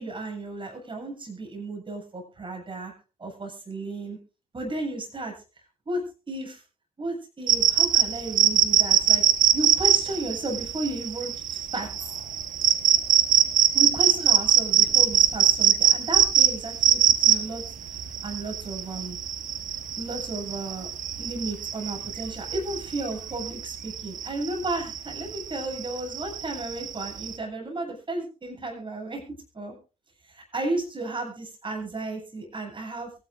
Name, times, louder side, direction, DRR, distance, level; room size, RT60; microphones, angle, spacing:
voice 1, 0.0-2.9 3.2-4.2 4.5-5.3 5.9-6.0 6.3-6.6 7.0-9.2 9.5-12.1 13.7-19.2 20.0-20.9 21.2-29.2 29.5-29.8 30.2-33.1, right 2 dB, 30° right, 1 dB, 7.6 m, -33 dB
sound 1, 7.5-27.4, right 9 dB, 55° right, 1.4 m, -22 dB
23.5 x 11.0 x 2.6 m, 0.32 s
hypercardioid pair, 45°, 16 cm